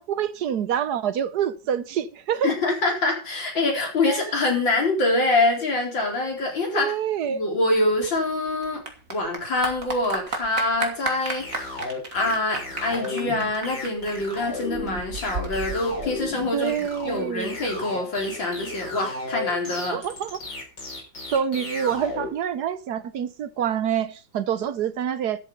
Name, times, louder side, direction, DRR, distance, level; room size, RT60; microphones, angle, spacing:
voice 1, 0.0-2.5 4.1-4.2 6.7-7.4 16.5-17.5 19.9-20.4 21.3-25.4, right 8 dB, 65° right, 1.3 m, -26 dB
voice 2, 2.4-6.9 7.3-11.8 12.1-20.0, left 2 dB, 90° left, 5.0 m, -25 dB
Clapping / Applause, 7.8-16.8, right 3 dB, 45° right, 2.8 m, -34 dB
sound 1, 11.4-22.3, left 2 dB, 70° left, 5.3 m, -34 dB
13.0 x 7.5 x 5.7 m
omnidirectional pair, 2.0 m